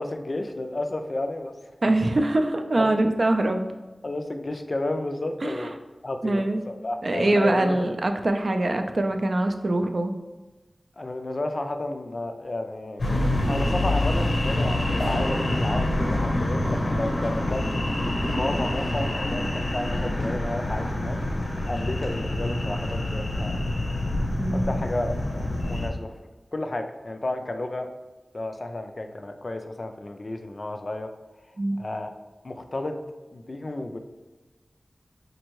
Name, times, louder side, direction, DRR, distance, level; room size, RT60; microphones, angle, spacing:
voice 1, 0.0-1.5 2.1-2.2 2.8-3.0 4.0-5.8 6.0-7.8 11.0-13.0 13.5-21.2 21.7-23.6 24.5-26.1 26.5-27.9 28.3-31.1 31.7-32.1 32.4-33.0 33.3-34.0, left 2 dB, 50° left, 6 dB, 0.3 m, -32 dB
voice 2, 1.8-3.6 5.4-5.7 6.2-6.6 7.0-10.1 24.4-24.8 31.6-31.8, right 1 dB, 55° right, 6 dB, 0.3 m, -23 dB
sound 1, 13.0-25.9, left 1 dB, 80° left, 0.7 m, -26 dB
4.4 x 2.5 x 3.0 m, 1.2 s
wide cardioid pair, 55°, 0 cm